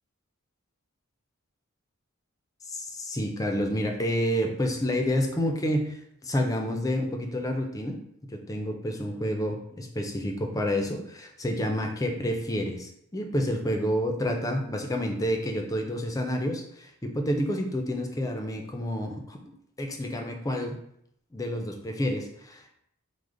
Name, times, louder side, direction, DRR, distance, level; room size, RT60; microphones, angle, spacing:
voice 1, 2.6-8.0 8.3-19.4 19.8-20.8 21.3-22.7, equal, 15° left, 3 dB, 0.4 m, -29 dB
4.8 x 2.1 x 3.7 m, 0.73 s
head